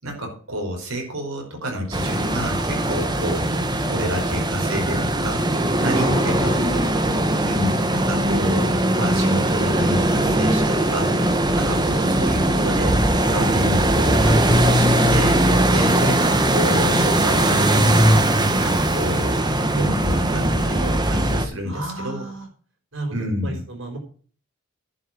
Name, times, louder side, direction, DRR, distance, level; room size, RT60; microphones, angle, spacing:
voice 1, 0.0-3.5 3.9-5.4 5.8-6.8 7.4-13.0 13.3-15.4 15.7-18.2 18.6-19.5 19.7-22.2 23.1-23.6, equal, 85° right, 2 dB, 5.0 m, -29 dB
sound 1, 1.9-21.5, right 1 dB, 20° right, 1.3 m, -20 dB
voice 2, 5.9-6.7 21.6-22.5 22.9-23.1 23.4-24.0, right 1 dB, 65° right, 4 dB, 5.0 m, -30 dB
11.0 x 6.9 x 7.6 m, 0.43 s
head